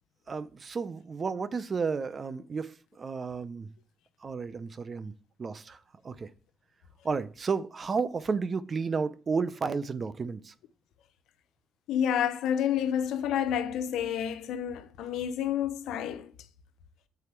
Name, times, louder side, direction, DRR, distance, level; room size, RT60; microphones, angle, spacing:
voice 1, 0.3-3.7 4.2-5.1 5.4-5.8 6.0-6.3 7.0-10.5, right 5 dB, 40° right, 0.6 m, -32 dB
voice 2, 11.9-16.3, left 9 dB, 80° left, 0.7 m, -29 dB
7.0 x 4.1 x 4.6 m
cardioid pair, 80°, 0 cm